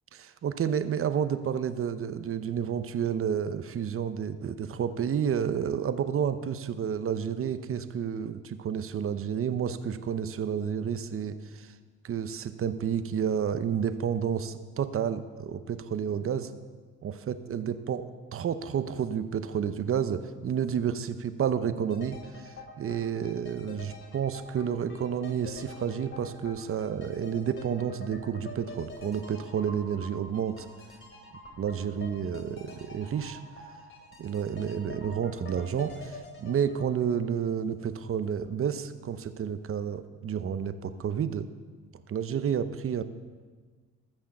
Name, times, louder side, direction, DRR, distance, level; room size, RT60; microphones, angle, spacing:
voice 1, 0.1-11.7 12.0-16.5 17.0-17.1 17.5-30.7 31.6-33.4 34.2-41.5 42.1-43.0, right 8 dB, 45° right, 11 dB, 0.8 m, -30 dB
sound 1, 21.9-37.8 38.1-38.2, left 2 dB, 40° left, 2.7 m, -46 dB
13.5 x 6.5 x 7.2 m, 1.5 s
cardioid pair, 90°, 30 cm